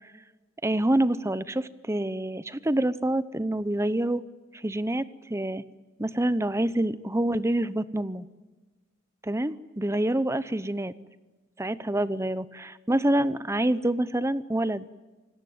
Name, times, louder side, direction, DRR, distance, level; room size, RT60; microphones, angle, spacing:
voice 1, 0.6-4.2 4.5-5.0 5.3-5.6 6.0-8.3 9.3-10.9 11.6-14.8, right 1 dB, 15° right, 16 dB, 0.8 m, -26 dB
28.0 x 18.5 x 9.5 m, 1.2 s
head